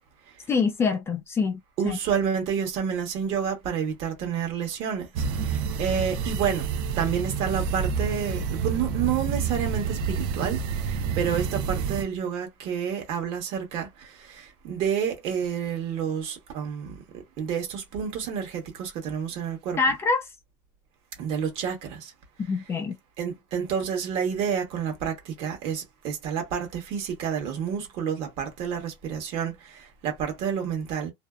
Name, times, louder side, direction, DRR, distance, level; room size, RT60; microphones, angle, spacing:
voice 1, 0.5-2.0 19.8-20.2 22.4-23.0, left 4 dB, 20° left, 0.4 m, -25 dB
voice 2, 1.8-5.1 5.5-5.6 5.8-6.7 7.0-17.0 17.4-19.8 21.2-22.1 23.2-31.1, right 7 dB, 55° right, 1.1 m, -29 dB
sound 1, 5.2-12.0, right 6 dB, 80° right, 0.5 m, -28 dB
2.6 x 2.0 x 2.3 m
cardioid pair, 150°, 12 cm